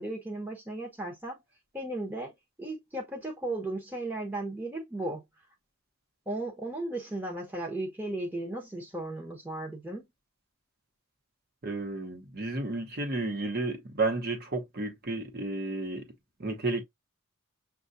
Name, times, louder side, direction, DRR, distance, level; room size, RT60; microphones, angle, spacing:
voice 1, 0.0-1.4 1.7-2.3 2.6-5.2 6.3-10.0, right 2 dB, 10° right, 0.8 m, -35 dB
voice 2, 11.6-16.1 16.4-16.8, right 2 dB, 45° right, 1.0 m, -32 dB
6.5 x 2.4 x 2.6 m
head